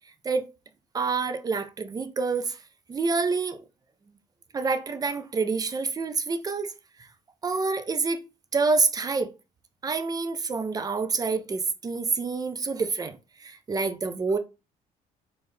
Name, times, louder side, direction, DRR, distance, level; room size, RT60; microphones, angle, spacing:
voice 1, 0.9-2.6 2.9-3.6 4.5-6.7 7.4-8.3 8.5-9.3 9.8-14.4, right 4 dB, 20° right, 0.5 m, -27 dB
4.0 x 2.3 x 3.4 m
cardioid pair, 110°, 17 cm